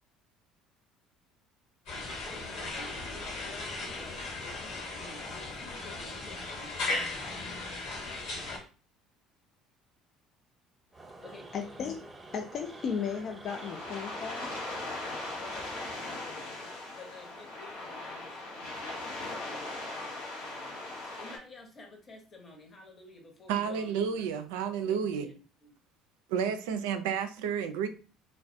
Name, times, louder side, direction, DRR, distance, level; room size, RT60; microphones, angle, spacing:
sound 1, 1.9-8.6, left 2 dB, 70° left, 1.2 m, -37 dB
voice 1, 2.3-7.4 11.2-11.5 15.4-20.8 21.2-24.3 24.8-25.7, left 2 dB, 35° left, 0.8 m, -52 dB
sound 2, 10.9-16.0, right 2 dB, 20° right, 0.8 m, -48 dB
voice 2, 11.5-12.0 12.3-14.5, left 6 dB, 50° left, 0.3 m, -35 dB
sound 3, 13.5-21.4, left 2 dB, 90° left, 0.6 m, -39 dB
voice 3, 23.5-25.3 26.3-27.9, right 7 dB, 75° right, 0.3 m, -31 dB
2.3 x 2.1 x 2.6 m
hypercardioid pair, 65°, 0 cm